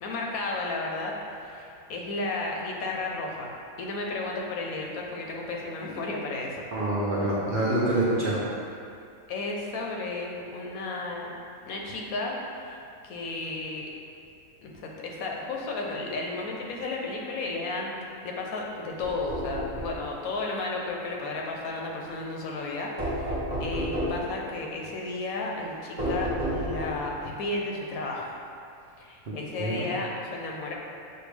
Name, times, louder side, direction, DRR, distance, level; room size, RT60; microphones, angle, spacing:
voice 1, 0.0-6.6 9.3-11.3 11.6-12.8 13.0-13.9 14.6-17.9 18.2-28.4 29.0-30.7, left 2 dB, 85° left, -1 dB, 1.1 m, -33 dB
voice 2, 6.7-8.4 29.3-29.8, right 1 dB, 50° right, -8 dB, 0.7 m, -26 dB
sound 1, 19.0-20.0 23.0-24.3 26.0-27.1, equal, 35° right, 1.2 m, -30 dB
6.7 x 2.3 x 3.3 m, 2.5 s
omnidirectional pair, 1.4 m